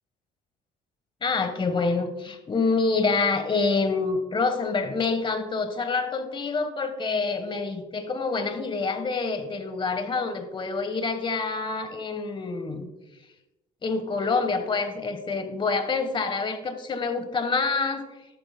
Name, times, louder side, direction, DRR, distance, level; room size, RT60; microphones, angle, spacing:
voice 1, 1.2-12.9 13.8-18.0, left 4 dB, 30° left, 9 dB, 1.2 m, -27 dB
12.5 x 9.3 x 2.2 m, 1.0 s
cardioid pair, 110°, 17 cm